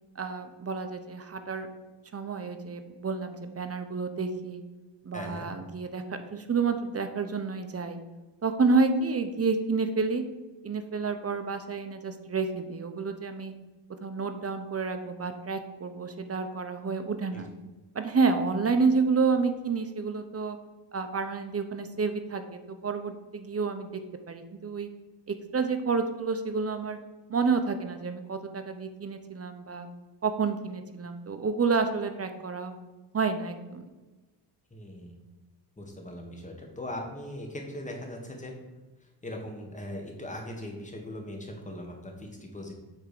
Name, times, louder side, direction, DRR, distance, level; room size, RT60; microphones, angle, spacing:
voice 1, 0.2-1.7 2.1-4.6 5.0-8.0 8.4-10.2 10.6-13.5 14.0-17.5 17.9-20.6 20.9-24.0 24.3-24.9 25.3-27.0 27.3-29.9 30.2-32.8 33.1-33.9, right 4 dB, 35° right, 8 dB, 0.8 m, -29 dB
voice 2, 5.1-5.5 17.3-17.4 34.7-35.2 35.8-38.5 39.2-42.7, left 1 dB, 15° left, 1 dB, 1.6 m, -39 dB
8.2 x 3.6 x 6.7 m, 1.2 s
cardioid pair, 115°, 45 cm